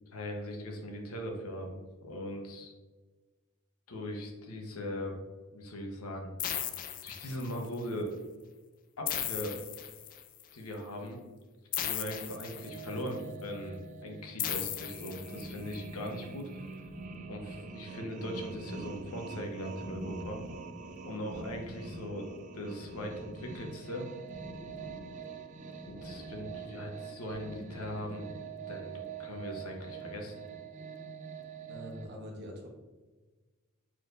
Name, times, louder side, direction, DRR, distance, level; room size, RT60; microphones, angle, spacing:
voice 1, 0.1-2.7 3.9-5.2 5.5-6.3 7.0-8.1 9.0-9.6 10.5-11.2 11.7-16.6 17.3-20.4 21.0-22.3 22.5-24.1 25.8-30.3, equal, 80° left, 2 dB, 1.0 m, -40 dB
sound 1, 6.4-7.7 9.1-10.4 11.7-13.1 14.4-15.7, left 10 dB, 40° left, 0.3 m, -37 dB
sound 2, 12.5-32.1, right 5 dB, 35° right, 0.4 m, -45 dB
sound 3, 15.2-28.4, left 1 dB, 10° left, 0.9 m, -49 dB
voice 2, 31.7-32.7, equal, 50° right, 0 dB, 1.1 m, -44 dB
4.5 x 4.3 x 2.5 m, 1.3 s
head